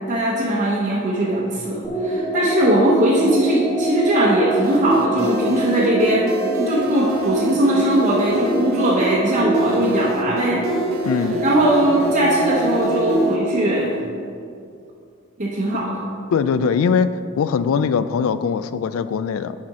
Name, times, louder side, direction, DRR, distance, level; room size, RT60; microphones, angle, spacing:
voice 1, 0.1-10.6 11.4-14.0 15.4-15.9, right 1 dB, 40° right, -6 dB, 0.9 m, -20 dB
sound 1, 1.8-13.7, right 1 dB, 10° left, 1.2 m, -24 dB
sound 2, 4.6-13.4, right 2 dB, 80° right, 0.8 m, -34 dB
voice 2, 11.1-11.4 16.3-19.6, left 6 dB, 80° left, 13 dB, 0.3 m, -21 dB
10.0 x 4.2 x 4.8 m, 2.4 s
head